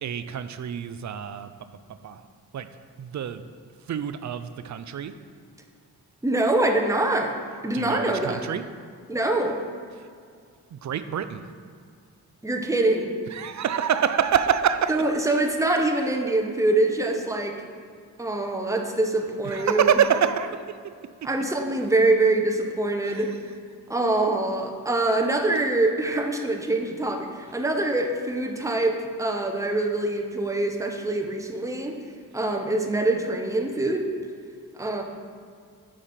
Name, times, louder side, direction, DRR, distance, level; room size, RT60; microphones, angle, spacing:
voice 1, 0.0-1.5 2.0-2.3 2.5-2.7 3.0-3.4 3.9-5.1 7.7-8.6 10.0-10.1 10.7-11.5 13.3-15.0 19.5-20.8 23.0-23.3, right 8 dB, 45° right, 11 dB, 0.5 m, -26 dB
voice 2, 6.2-7.4 7.6-8.4 9.1-9.6 12.4-13.1 14.9-17.6 18.2-20.0 21.2-23.3 23.9-32.0 32.3-34.1 34.7-35.0, right 2 dB, 10° right, 3 dB, 0.9 m, -24 dB
6.3 x 4.9 x 4.3 m, 2.2 s
supercardioid pair, 45°, 39 cm